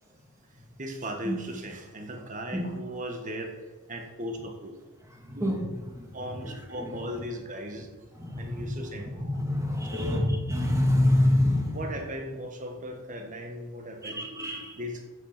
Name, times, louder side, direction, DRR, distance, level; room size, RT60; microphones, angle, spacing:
voice 1, 0.8-4.8 5.3-5.5 6.1-7.9 8.4-9.3 9.9-10.2 11.7-14.2 14.8-15.1, equal, 35° right, 4 dB, 1.7 m, -37 dB
voice 2, 5.2-6.1 6.4-6.5 8.2-8.7 9.1-11.8 14.0-14.8, left 1 dB, 15° right, 0 dB, 2.1 m, -26 dB
14.0 x 8.1 x 6.0 m, 1.3 s
head